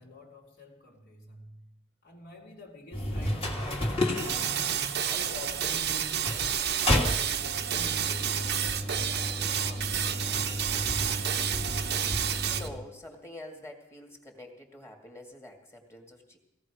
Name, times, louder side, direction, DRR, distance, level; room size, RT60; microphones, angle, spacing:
voice 1, 0.0-1.7 2.0-10.9, left 1 dB, 55° left, 2.8 m, -48 dB
sound 1, 2.9-12.8, left 1 dB, 30° left, 2.6 m, -33 dB
sound 2, 4.2-12.7, right 9 dB, 50° right, 0.8 m, -30 dB
voice 2, 12.4-16.4, left 1 dB, 15° left, 2.3 m, -46 dB
17.5 x 16.0 x 5.0 m
head